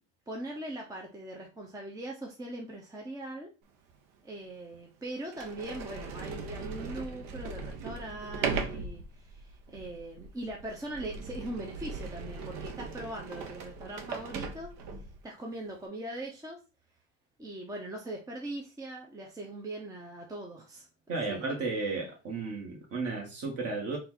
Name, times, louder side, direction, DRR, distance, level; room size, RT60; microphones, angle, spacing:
voice 1, 0.3-3.5 4.2-15.0 15.2-16.6 17.4-20.9 21.3-21.6, right 1 dB, 10° right, 0.7 m, -41 dB
Sliding door, 3.9-4.0 4.7-4.8 5.3-15.2, right 5 dB, 60° right, 1.0 m, -39 dB
voice 2, 21.1-24.0, right 3 dB, 40° right, 1.8 m, -33 dB
4.2 x 2.6 x 4.1 m
supercardioid pair, 130°, 36 cm